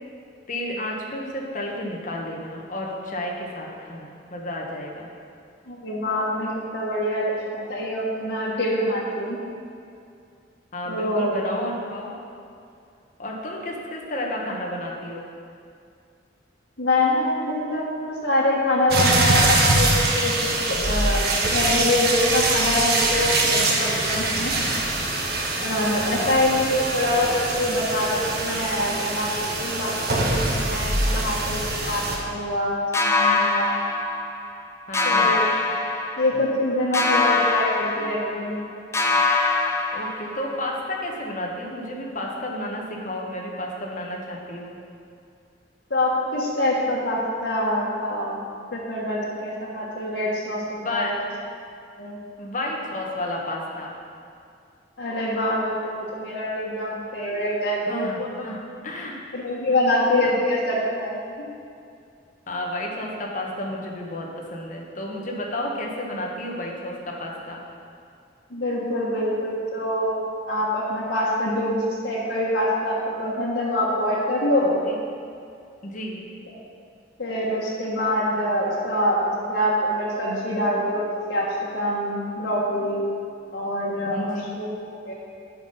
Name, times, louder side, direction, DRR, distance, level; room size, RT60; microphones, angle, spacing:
voice 1, 0.5-5.1 10.7-12.1 13.2-15.2 25.9-26.3 34.9-35.4 39.9-44.8 50.8-51.2 52.4-53.9 57.9-58.6 58.8-59.2 60.2-60.4 62.5-67.6 74.8-75.0 75.8-76.2 84.1-84.4, left 1 dB, 45° left, -1 dB, 1.4 m, -31 dB
voice 2, 5.7-9.4 10.9-11.4 16.8-24.5 25.6-33.7 35.0-35.5 36.2-38.6 45.9-48.4 48.7-51.2 52.0-52.2 55.0-58.5 59.3-61.2 68.5-70.2 70.5-74.7 76.5-76.6 77.2-81.5 81.7-83.1 83.5-85.1, left 1 dB, 90° left, -6 dB, 1.5 m, -25 dB
sound 1, 18.9-32.2, right 2 dB, 60° right, 1.4 m, -23 dB
sound 2, 32.9-34.6 34.9-36.6 36.9-38.7 38.9-40.6, left 3 dB, 15° left, 0.7 m, -23 dB
10.0 x 5.7 x 5.6 m, 2.4 s
head